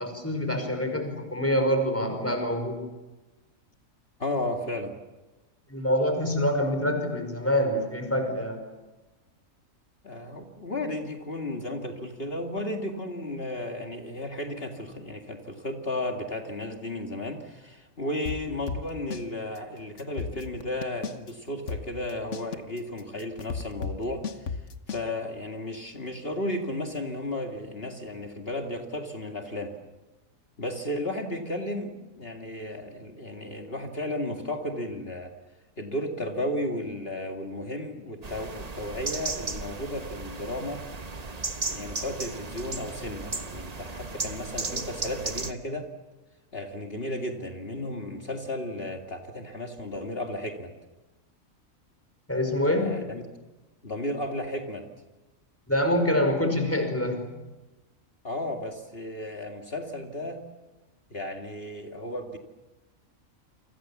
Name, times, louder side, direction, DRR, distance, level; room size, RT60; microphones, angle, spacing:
voice 1, 0.0-2.8 5.7-8.6 52.3-53.0 55.7-57.2, left 1 dB, 10° left, 5 dB, 5.4 m, -26 dB
voice 2, 4.2-4.9 10.0-24.6 24.9-29.7 30.6-35.3 35.8-40.8 41.7-45.9 46.5-50.7 52.8-53.2 53.8-54.8 58.2-60.4 61.1-62.4, left 1 dB, 45° left, 3 dB, 2.4 m, -34 dB
sound 1, 18.3-19.3 19.6-19.7 20.0-21.3 21.7-25.1, left 5 dB, 60° left, 1.4 m, -34 dB
sound 2, 38.2-45.5, right 3 dB, 30° right, 1.2 m, -35 dB
29.0 x 25.5 x 7.2 m, 1.1 s
omnidirectional pair, 1.4 m